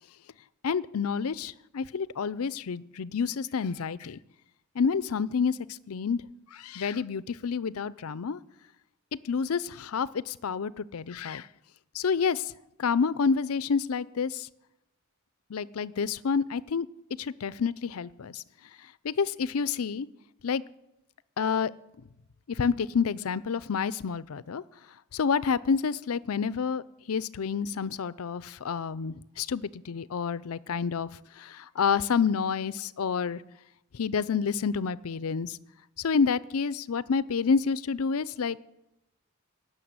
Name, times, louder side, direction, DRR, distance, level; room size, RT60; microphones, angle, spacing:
voice 1, 0.6-4.2 4.8-5.6 5.9-6.2 6.5-8.4 9.2-11.5 11.9-12.5 12.8-14.5 15.5-16.9 17.2-18.4 19.0-20.1 20.4-20.6 21.4-21.7 22.5-24.6 25.1-31.1 31.4-33.4 33.9-35.6 36.0-38.6, left 6 dB, 80° left, 18 dB, 0.5 m, -29 dB
17.0 x 7.0 x 9.5 m, 0.91 s
head